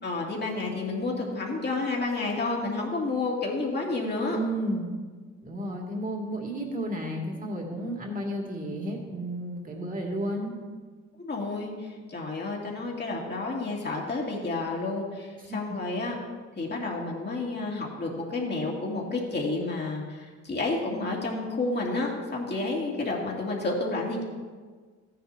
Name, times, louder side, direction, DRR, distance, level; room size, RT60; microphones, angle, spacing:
voice 1, 0.0-4.4 11.2-16.1 16.6-24.2, left 3 dB, 35° left, -2 dB, 2.5 m, -30 dB
voice 2, 4.3-4.9 5.4-10.5, right 1 dB, 30° right, -1 dB, 2.4 m, -32 dB
14.0 x 10.5 x 2.8 m, 1.5 s
cardioid pair, 90°, 30 cm